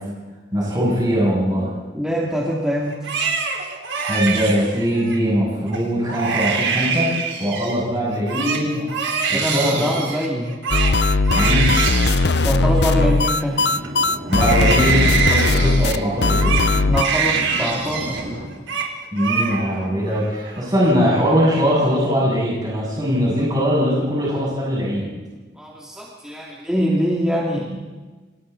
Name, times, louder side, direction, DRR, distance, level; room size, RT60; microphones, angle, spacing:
voice 1, 0.5-1.7 4.1-7.1 7.4-8.8 9.5-9.8 11.3-11.7 14.3-16.5 19.1-25.1, equal, 20° right, -6 dB, 8.0 m, -21 dB
voice 2, 1.9-3.1 9.3-10.5 12.3-13.7 16.8-18.4 25.6-27.8, equal, 5° right, -5 dB, 3.0 m, -24 dB
Crying sobbing, 2.9-5.2 5.7-5.8 6.1-7.8 8.1-13.9 14.3-18.2 18.5-18.9 19.2-19.9 20.2-20.9, right 5 dB, 75° right, 3.9 m, -25 dB
sound 1, 10.7-17.0, left 3 dB, 60° left, 0.7 m, -18 dB
sound 2, 13.5-18.5, right 1 dB, 50° right, 4.6 m, -33 dB
30.0 x 26.0 x 4.3 m, 1.3 s
head